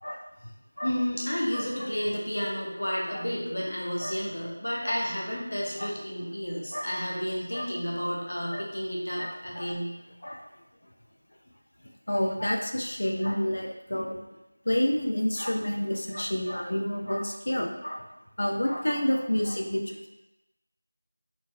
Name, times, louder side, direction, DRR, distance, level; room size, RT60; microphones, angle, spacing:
voice 1, 0.8-9.9, equal, 70° left, -3 dB, 0.9 m, -31 dB
voice 2, 9.2-9.7 10.2-10.5 12.1-14.2 14.7-18.1 18.4-20.1, left 1 dB, 55° left, 1 dB, 0.3 m, -29 dB
3.8 x 2.3 x 2.3 m, 0.97 s
figure-of-eight pair, 180°, 0 cm